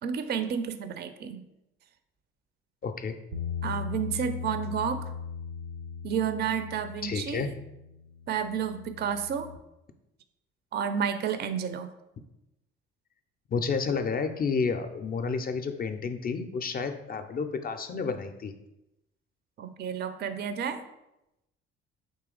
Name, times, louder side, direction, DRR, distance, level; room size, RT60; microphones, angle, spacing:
voice 1, 0.0-1.4 3.6-5.1 6.0-7.5 8.3-9.5 10.7-11.9 19.6-20.8, right 7 dB, 35° right, 10 dB, 0.4 m, -31 dB
voice 2, 2.8-3.1 7.0-7.5 13.5-18.5, left 5 dB, 30° left, 7 dB, 0.4 m, -30 dB
Bass guitar, 3.3-9.6, left 6 dB, 70° right, 0.7 m, -38 dB
3.8 x 2.8 x 3.7 m, 0.90 s
hypercardioid pair, 50°, 32 cm